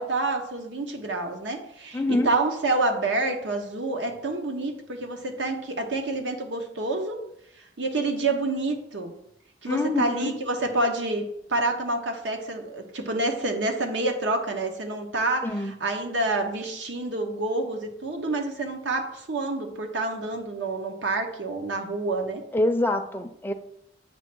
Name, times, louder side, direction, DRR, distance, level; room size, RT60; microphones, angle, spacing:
voice 1, 0.0-7.2 7.8-9.1 9.6-22.4, right 2 dB, 85° right, 4 dB, 1.1 m, -28 dB
voice 2, 1.9-2.3 9.7-10.4 15.4-15.7 22.5-23.5, left 2 dB, 10° left, 5 dB, 0.4 m, -25 dB
8.0 x 3.2 x 6.0 m, 0.78 s
head